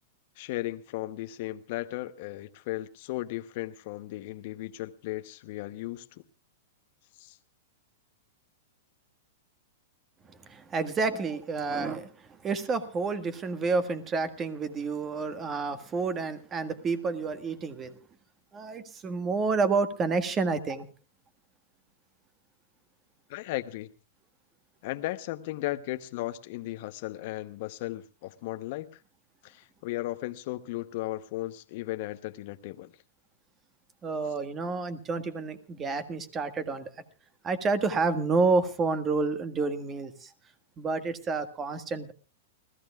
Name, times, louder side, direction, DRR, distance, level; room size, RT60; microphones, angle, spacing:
voice 1, 0.4-6.2 7.2-7.4 23.3-23.9 24.8-29.0 29.4-32.9, left 17 dB, 55° left, 0.9 m, -36 dB
voice 2, 10.4-12.1 12.4-18.0 18.5-20.9 34.0-36.9 37.4-40.3 40.8-42.1, right 4 dB, 25° right, 1.7 m, -29 dB
29.5 x 14.5 x 2.4 m
hypercardioid pair, 125°, 0 cm